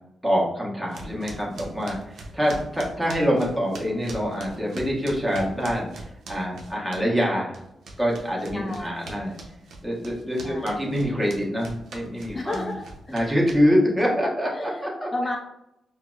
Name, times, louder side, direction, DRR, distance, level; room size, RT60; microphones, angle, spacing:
voice 1, 0.2-7.6 8.0-9.4 9.8-12.8 13.1-15.1, equal, 10° right, -4 dB, 1.0 m, -25 dB
sound 1, 0.9-7.3 7.5-13.9, right 2 dB, 75° right, 0.6 m, -41 dB
voice 2, 8.5-9.3 10.4-10.9 12.3-13.1 14.6-14.8 15.1-15.4, left 2 dB, 25° left, 1 dB, 0.4 m, -33 dB
4.5 x 2.0 x 2.3 m, 0.84 s
cardioid pair, 95°, 0 cm